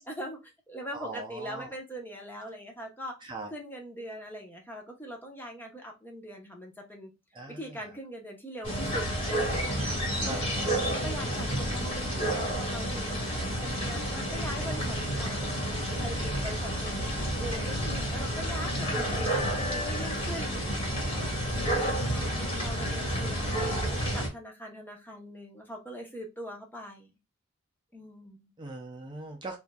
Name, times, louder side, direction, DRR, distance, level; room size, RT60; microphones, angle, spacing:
voice 1, 0.1-7.1 7.6-10.5 10.9-13.2 13.6-15.5 16.0-17.1 17.4-23.7 24.1-27.1 27.9-28.5, equal, 10° left, 1 dB, 0.9 m, -42 dB
voice 2, 0.9-1.7 3.2-3.5 7.3-7.8 10.2-10.8 22.0-22.9 28.6-29.6, right 2 dB, 25° right, 1 dB, 0.5 m, -41 dB
sound 1, 8.6-24.3, equal, 30° left, 1.7 m, -30 dB
4.3 x 2.6 x 2.2 m, 0.25 s
head